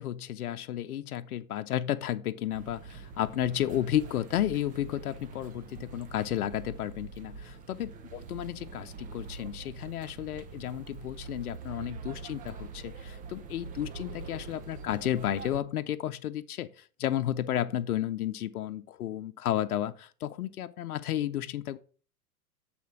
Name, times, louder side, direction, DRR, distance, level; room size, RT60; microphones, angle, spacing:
voice 1, 0.0-21.8, left 12 dB, 75° left, 0.7 m, -32 dB
sound 1, 2.5-15.6, right 5 dB, 20° right, 0.6 m, -44 dB
7.2 x 4.3 x 5.8 m
hypercardioid pair, 105°, 45 cm